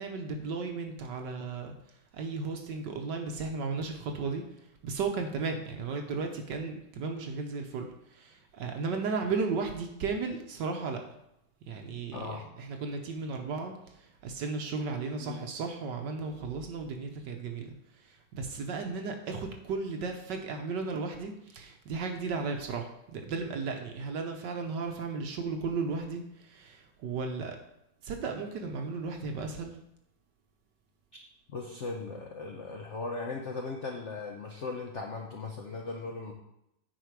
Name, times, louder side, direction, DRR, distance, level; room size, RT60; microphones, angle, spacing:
voice 1, 0.0-1.8 2.1-11.0 11.6-27.6 28.0-29.8, right 4 dB, 65° right, 4 dB, 1.2 m, -35 dB
voice 2, 12.1-12.4 15.2-15.4 31.5-36.3, left 3 dB, 80° left, 1 dB, 0.6 m, -38 dB
8.9 x 5.0 x 4.6 m, 0.83 s
omnidirectional pair, 2.4 m